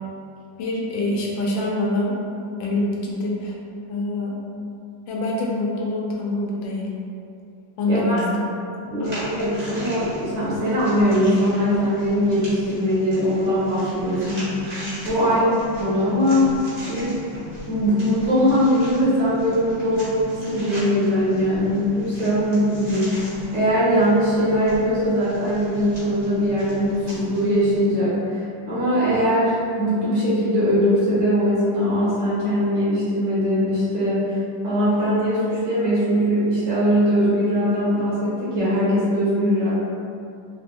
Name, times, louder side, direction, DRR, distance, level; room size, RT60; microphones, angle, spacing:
voice 1, 0.6-2.2 2.6-3.6 3.9-4.4 5.1-6.9 7.8-8.2 8.8-9.1 15.2-15.5, left 1 dB, 80° left, -3 dB, 1.3 m, -25 dB
voice 2, 7.9-8.2 8.9-15.4 15.8-16.5 16.8-17.2 17.7-23.2 23.5-34.3 34.6-39.7, equal, 65° right, -12 dB, 2.0 m, -21 dB
sound 1, 9.0-27.8, right 1 dB, 30° right, 0.8 m, -37 dB
4.5 x 2.6 x 2.3 m, 2.5 s
omnidirectional pair, 2.1 m